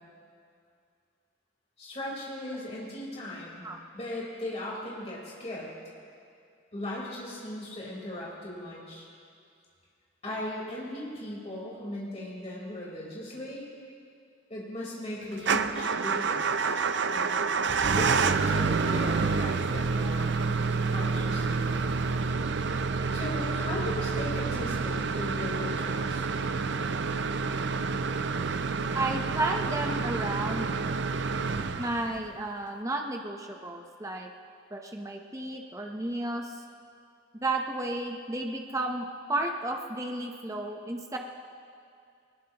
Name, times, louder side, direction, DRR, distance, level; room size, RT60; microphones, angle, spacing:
voice 1, 1.8-3.6 3.9-5.7 6.7-9.1 10.2-13.6 14.5-16.7 17.1-17.5 17.8-20.6 20.9-21.7 22.0-22.1 23.1-26.3, left 1 dB, 30° left, -5 dB, 4.1 m, -38 dB
Motor vehicle (road) / Engine starting / Idling, 15.4-32.4, right 4 dB, 60° right, 0.5 m, -28 dB
voice 2, 28.9-30.7 31.8-34.3 34.7-36.6 37.3-41.2, right 2 dB, 15° right, 2 dB, 0.8 m, -32 dB
20.5 x 20.0 x 3.0 m, 2.4 s
head